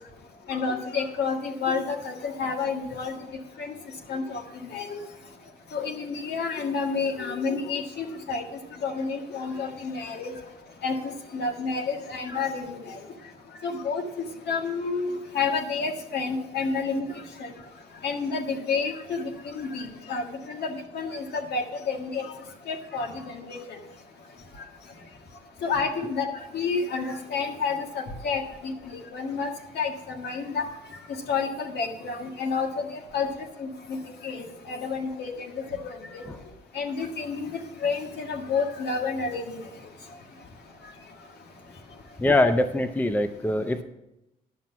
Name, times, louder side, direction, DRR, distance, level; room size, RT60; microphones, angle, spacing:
voice 1, 0.5-3.1 3.6-3.7 4.1-4.4 4.7-5.0 5.7-8.4 8.8-10.3 10.8-13.0 13.6-14.0 14.5-17.1 17.4-17.5 18.0-22.2 22.7-23.6 25.6-26.3 26.5-29.5 29.7-30.7 31.3-32.7 33.1-33.3 33.6-34.0 34.2-35.5 35.8-36.2 36.7-37.5 37.8-39.6, left 4 dB, 70° left, 3 dB, 1.7 m, -29 dB
voice 2, 42.2-43.8, left 1 dB, 10° left, 10 dB, 0.6 m, -23 dB
10.5 x 5.9 x 5.9 m, 0.89 s
cardioid pair, 80°, 18 cm